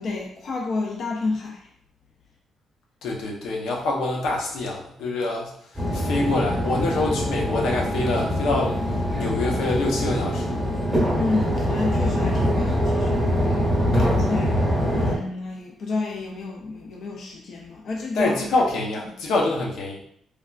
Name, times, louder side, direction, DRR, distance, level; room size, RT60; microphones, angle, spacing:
voice 1, 0.0-1.7 11.1-13.2 14.0-14.6 14.9-18.3, left 3 dB, 50° left, -1 dB, 0.4 m, -29 dB
voice 2, 3.0-5.5 5.9-10.6 13.4-13.7 13.9-14.1 18.1-20.0, left 2 dB, 85° left, -1 dB, 0.7 m, -26 dB
sound 1, 5.8-15.1, equal, ahead, 0.8 m, -23 dB
3.3 x 2.4 x 2.3 m, 0.68 s
cardioid pair, 170°, 0 cm